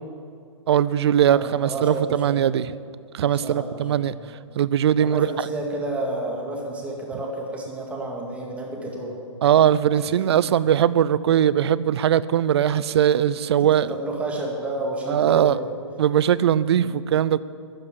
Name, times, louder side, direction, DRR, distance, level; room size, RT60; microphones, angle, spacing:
voice 1, 0.7-2.7 3.1-4.1 4.6-5.3 9.4-13.9 15.1-15.6 16.0-17.4, right 10 dB, 60° right, 18 dB, 0.5 m, -20 dB
voice 2, 1.3-2.4 3.2-4.0 5.0-9.2 10.0-10.7 13.6-15.7 16.8-16.9, right 2 dB, 10° right, -1 dB, 2.0 m, -31 dB
12.5 x 6.7 x 9.8 m, 2.3 s
hypercardioid pair, 140°, 16 cm